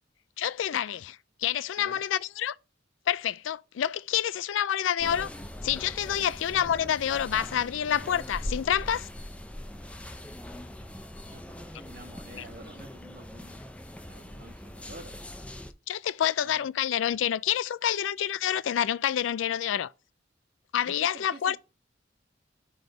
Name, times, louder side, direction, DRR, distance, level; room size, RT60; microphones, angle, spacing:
voice 1, 0.4-2.6 3.1-5.3 5.6-9.1 15.9-19.9 20.7-21.6, left 10 dB, 90° left, 0.4 m, -28 dB
sound 1, 5.0-15.7, left 1 dB, 5° left, 0.4 m, -41 dB
voice 2, 11.3-13.6 14.1-15.2 16.4-16.7 20.8-21.6, right 1 dB, 55° right, 1.3 m, -49 dB
6.1 x 3.5 x 4.9 m
head